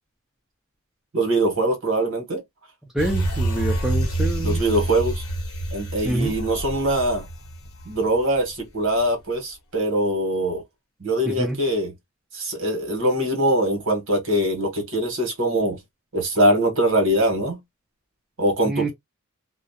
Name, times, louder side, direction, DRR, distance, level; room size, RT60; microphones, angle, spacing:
voice 1, 1.1-2.4 4.4-5.2 5.7-7.3 7.8-10.6 11.0-11.9 12.3-15.8 16.1-17.6 18.4-18.9, right 1 dB, 65° right, 1.0 m, -22 dB
voice 2, 2.9-4.6 6.0-6.3 11.3-11.6 18.6-18.9, right 1 dB, ahead, 0.3 m, -26 dB
sound 1, 3.0-8.6 9.0-9.1, right 2 dB, 80° left, 0.9 m, -27 dB
2.3 x 2.0 x 2.6 m
head